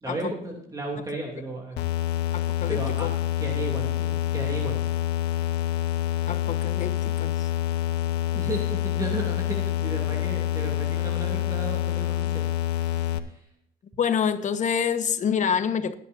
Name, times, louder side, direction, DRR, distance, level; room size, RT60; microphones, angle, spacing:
voice 1, 0.0-1.9 2.7-3.1 3.4-4.8 8.3-12.4 13.3-13.4, right 1 dB, 20° right, 2.8 m, -34 dB
sound 1, 1.8-13.2, left 12 dB, 90° left, 1.0 m, -27 dB
voice 2, 2.3-3.1 6.3-7.5 14.0-15.9, left 7 dB, 45° left, 1.3 m, -27 dB
20.0 x 10.5 x 2.7 m
cardioid pair, 110°, 17 cm